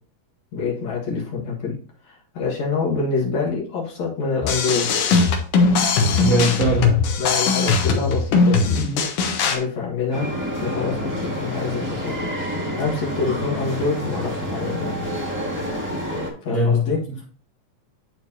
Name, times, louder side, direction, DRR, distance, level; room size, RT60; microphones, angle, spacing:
voice 1, 0.5-1.7 2.1-4.9 6.8-9.0 9.4-10.3 10.6-12.1 12.8-15.0 16.4-17.0, left 4 dB, 65° left, -2 dB, 2.8 m, -26 dB
sound 1, 4.4-9.6, left 4 dB, 85° left, 2.6 m, -19 dB
voice 2, 6.1-7.0 16.5-17.2, equal, 45° right, -4 dB, 1.0 m, -21 dB
sound 2, 10.1-16.3, equal, 10° right, 0.8 m, -28 dB
10.5 x 4.6 x 2.7 m, 0.43 s
omnidirectional pair, 3.5 m